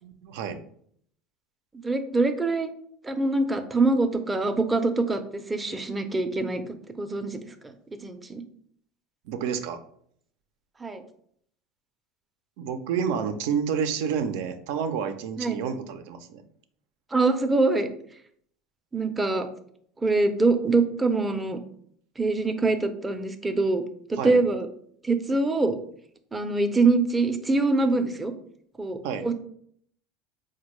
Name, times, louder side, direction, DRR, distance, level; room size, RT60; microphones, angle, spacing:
voice 1, 0.0-0.6 9.2-9.8 12.6-16.4 24.2-24.4 29.0-29.3, right 7 dB, 75° right, 9 dB, 0.4 m, -29 dB
voice 2, 1.7-2.7 3.0-7.7 8.0-8.4 10.8-11.0 15.4-15.6 17.1-17.9 18.9-19.5 20.0-21.6 22.2-23.8 24.1-24.7 25.0-25.8 26.3-28.3 28.8-29.3, right 3 dB, 15° right, 7 dB, 0.5 m, -24 dB
4.2 x 2.2 x 3.0 m, 0.64 s
supercardioid pair, 100°, 0 cm